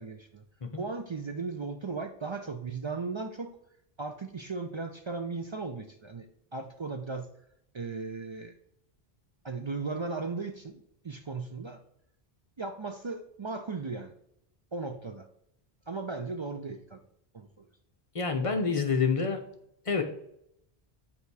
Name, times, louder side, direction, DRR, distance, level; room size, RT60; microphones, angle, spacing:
voice 1, 0.0-0.4 0.8-3.5 4.0-6.3 6.5-7.3 7.7-8.6 9.4-11.8 12.6-14.1 14.7-15.3 15.9-17.0 17.3-17.7, right 4 dB, 45° right, 6 dB, 0.4 m, -36 dB
voice 2, 18.1-19.4 19.9-20.0, left 5 dB, 35° left, 5 dB, 0.8 m, -27 dB
8.1 x 2.8 x 4.7 m, 0.76 s
omnidirectional pair, 1.0 m